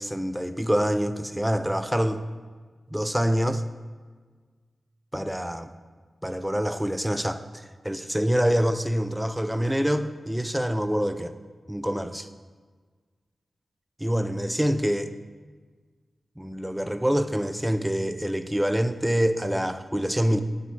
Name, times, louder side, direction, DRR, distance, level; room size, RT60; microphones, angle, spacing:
voice 1, 0.0-2.2 2.9-3.6 5.1-5.7 6.2-11.3 11.7-12.3 14.0-15.1 16.4-20.4, equal, 5° right, 10 dB, 0.5 m, -26 dB
8.8 x 5.1 x 7.8 m, 1.5 s
wide cardioid pair, 70°, 0 cm